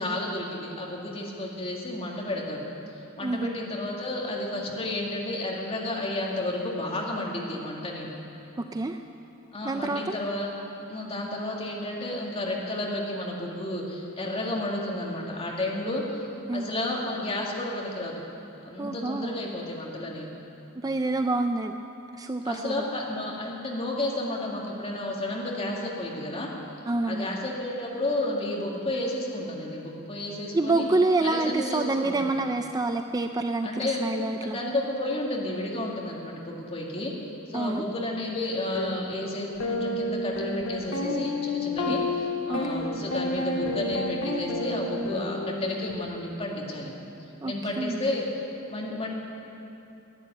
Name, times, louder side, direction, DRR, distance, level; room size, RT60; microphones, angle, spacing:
voice 1, 0.0-2.7 3.2-8.1 9.5-10.5 10.9-16.3 16.5-18.2 18.6-20.3 22.4-26.5 27.1-30.9 31.2-32.3 33.6-34.0 34.4-37.2 37.5-46.9 47.4-48.4 48.7-49.1, left 1 dB, 30° left, -2 dB, 2.2 m, -32 dB
voice 2, 3.2-3.5 8.7-9.0 9.6-10.2 16.5-16.7 18.8-19.3 20.8-21.7 22.1-22.7 26.9-27.3 30.5-34.6 37.5-37.8 41.8-41.9 42.5-42.8 47.4-48.0, right 2 dB, 20° right, 6 dB, 0.4 m, -27 dB
sound 1, 38.7-38.9 39.6-45.9, left 2 dB, 75° left, 1.8 m, -30 dB
11.5 x 10.0 x 9.4 m, 2.8 s
head